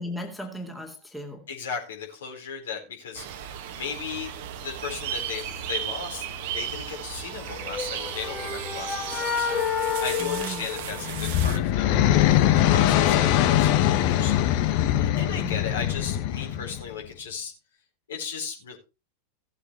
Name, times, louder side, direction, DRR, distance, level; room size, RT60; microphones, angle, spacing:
voice 1, 0.0-1.5 10.2-10.7 11.4-11.8 15.4-15.6, left 1 dB, 5° left, 2.3 m, -36 dB
voice 2, 1.5-4.3 4.6-6.2 6.5-12.0 12.6-17.5 18.1-18.8, left 6 dB, 65° left, 4.4 m, -36 dB
sound 1, 3.1-11.6, right 9 dB, 50° right, 1.5 m, -35 dB
sound 2, 7.6-11.5, left 7 dB, 25° left, 2.1 m, -30 dB
sound 3, 10.8-16.9, left 12 dB, 45° left, 1.2 m, -22 dB
17.5 x 8.2 x 3.2 m
figure-of-eight pair, 90°, 0 cm